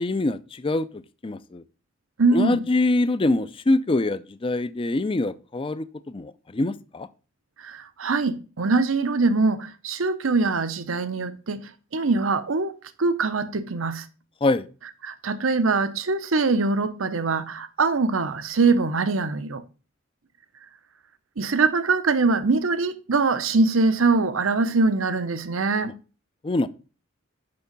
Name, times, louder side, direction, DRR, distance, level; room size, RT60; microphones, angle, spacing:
voice 1, 0.0-1.6 2.3-7.1 14.4-14.7 25.8-25.9 26.4-26.7, left 2 dB, 25° left, 0.5 m, -24 dB
voice 2, 2.2-2.6 7.6-14.1 15.0-19.6 21.4-25.9, right 3 dB, 85° right, 0.8 m, -23 dB
6.8 x 6.0 x 5.3 m
head